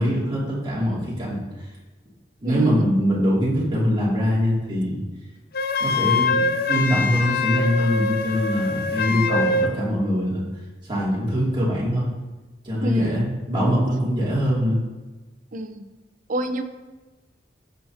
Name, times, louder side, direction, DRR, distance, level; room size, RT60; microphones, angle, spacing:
voice 1, 0.0-1.4 2.4-5.0 5.8-10.5 10.8-12.1 12.6-14.8, equal, 25° right, -6 dB, 2.6 m, -23 dB
voice 2, 2.4-2.9 12.8-13.3 15.5-15.9 16.3-16.6, right 1 dB, 45° right, 8 dB, 0.7 m, -28 dB
Wind instrument woodwind instrument, 5.5-9.7, left 3 dB, 55° left, 0.6 m, -24 dB
15.0 x 5.8 x 2.8 m, 1.2 s
head